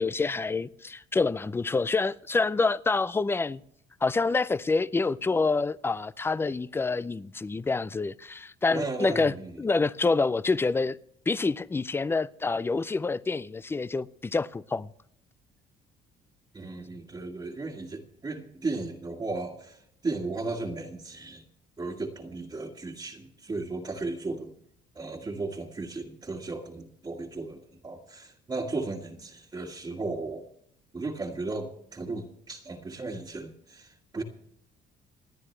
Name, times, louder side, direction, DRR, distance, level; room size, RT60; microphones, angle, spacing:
voice 1, 0.0-3.6 4.0-9.3 9.6-11.0 11.3-14.9, left 3 dB, 15° left, 0.4 m, -27 dB
voice 2, 8.7-9.6 16.5-21.4 21.8-24.5 25.0-30.5 30.9-34.2, right 3 dB, 25° right, 1.7 m, -35 dB
27.5 x 9.8 x 3.3 m
cardioid pair, 110°, 17 cm